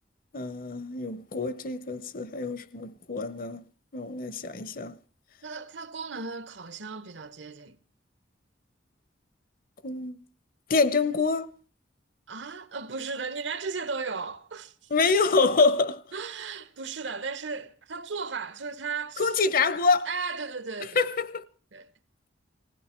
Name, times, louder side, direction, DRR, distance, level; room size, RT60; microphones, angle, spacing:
voice 1, 0.3-3.6 3.9-5.0 9.8-10.2 10.7-11.5 14.9-16.0 19.2-20.1 21.0-21.4, left 4 dB, 50° left, 0.8 m, -26 dB
voice 2, 5.4-7.8 12.3-14.7 16.1-19.3 20.0-21.1 21.7-21.9, right 4 dB, 75° right, 1.1 m, -35 dB
19.5 x 16.5 x 4.4 m
head